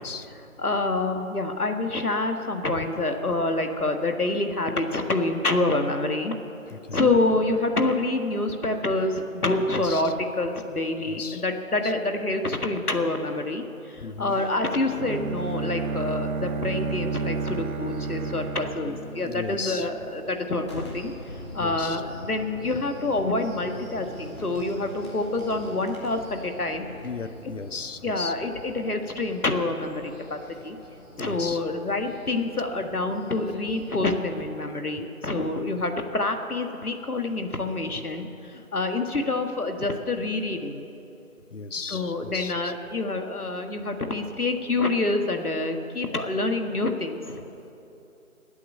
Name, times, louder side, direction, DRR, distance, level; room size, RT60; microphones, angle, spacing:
voice 1, 0.6-6.4 6.9-21.1 21.5-26.9 28.0-30.8 31.2-40.9 41.9-47.4, left 2 dB, 90° left, 5 dB, 1.7 m, -27 dB
voice 2, 6.7-7.0 9.7-10.1 11.1-11.4 11.8-11.9 14.0-14.4 19.2-19.9 21.6-22.0 27.0-28.3 31.2-31.6 41.5-42.7, left 4 dB, 60° left, 12 dB, 0.8 m, -36 dB
sound 1, 14.3-34.0, left 1 dB, 5° right, 3.1 m, -50 dB
Bowed string instrument, 15.0-20.0, right 4 dB, 75° right, 0.7 m, -31 dB
Boom, 20.6-30.2, left 1 dB, 20° left, 1.4 m, -43 dB
16.0 x 8.4 x 9.7 m, 2.9 s
figure-of-eight pair, 160°, 43 cm